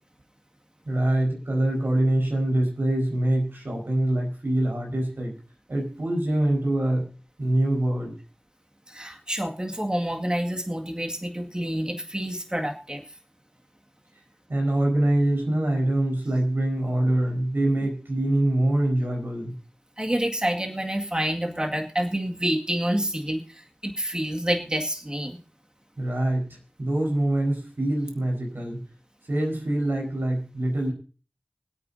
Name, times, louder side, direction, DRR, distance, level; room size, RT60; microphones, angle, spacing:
voice 1, 0.8-5.3 5.7-7.1 7.4-8.1 14.5-19.6 26.0-26.5 26.8-28.8 29.3-30.9, right 1 dB, 85° right, 1 dB, 4.9 m, -24 dB
voice 2, 8.9-13.0 20.0-25.4, right 1 dB, 25° right, 2 dB, 2.0 m, -28 dB
25.0 x 8.5 x 2.7 m, 0.37 s
wide cardioid pair, 50°, 4 cm